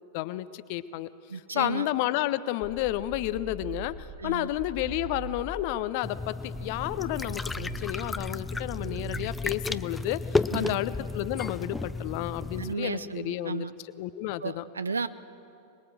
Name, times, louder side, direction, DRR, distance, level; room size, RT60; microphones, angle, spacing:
voice 1, 0.1-13.7 14.0-14.6, left 15 dB, 45° left, 15 dB, 0.8 m, -31 dB
voice 2, 1.3-1.9 4.2-4.5 10.5-10.8 12.6-13.7 14.4-15.1, right 4 dB, 75° right, 14 dB, 0.8 m, -33 dB
sound 1, 2.6-5.9 6.5-9.9, right 3 dB, 30° right, 2.7 m, -42 dB
sound 2, 6.0-12.7, left 3 dB, 10° left, 0.6 m, -33 dB
25.5 x 20.5 x 7.6 m, 2.6 s
figure-of-eight pair, 90°, 0 cm